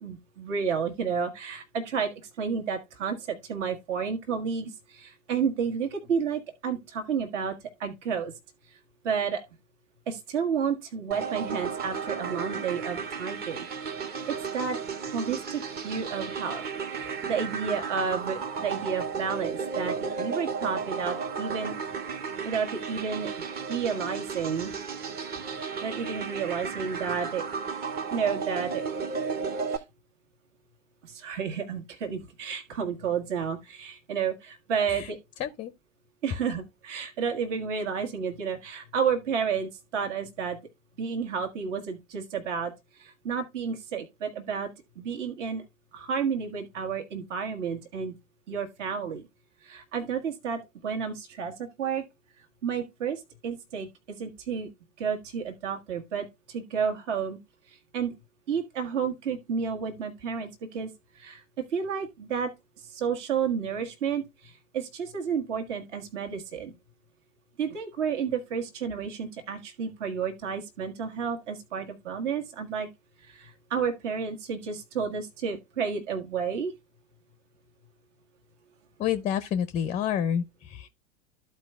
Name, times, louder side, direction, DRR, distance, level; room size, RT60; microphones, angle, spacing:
voice 1, 0.0-7.5 7.8-8.3 8.7-8.8 9.0-9.4 10.1-13.7 13.9-16.6 16.9-21.7 22.4-23.3 23.7-24.7 25.8-27.4 28.1-28.8 29.7-29.8 31.0-35.2 36.2-40.6 41.0-42.7 43.0-44.7 45.0-45.6 45.9-48.1 48.5-49.2 49.6-52.0 52.6-54.7 55.0-57.4 57.7-58.1 58.5-60.9 61.1-61.4 61.7-62.5 62.8-66.7 67.6-72.9 73.2-76.7, right 6 dB, 60° right, 1.7 m, -31 dB
sound 1, 11.1-29.8, right 5 dB, 25° right, 0.7 m, -34 dB
voice 2, 35.4-35.7 79.0-80.9, left 9 dB, 20° left, 0.5 m, -28 dB
14.0 x 4.6 x 2.3 m
hypercardioid pair, 95°, 41 cm